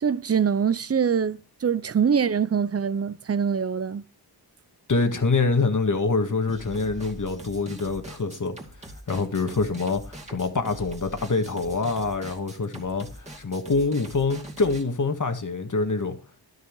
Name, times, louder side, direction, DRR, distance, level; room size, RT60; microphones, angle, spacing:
voice 1, 0.0-4.0, right 7 dB, 35° right, 0.5 m, -24 dB
voice 2, 4.9-8.6 9.1-13.1 13.4-16.2, left 3 dB, 45° left, 1.8 m, -25 dB
sound 1, 6.5-14.8, right 1 dB, 15° right, 2.4 m, -42 dB
12.5 x 7.0 x 4.7 m
wide cardioid pair, 100°, 43 cm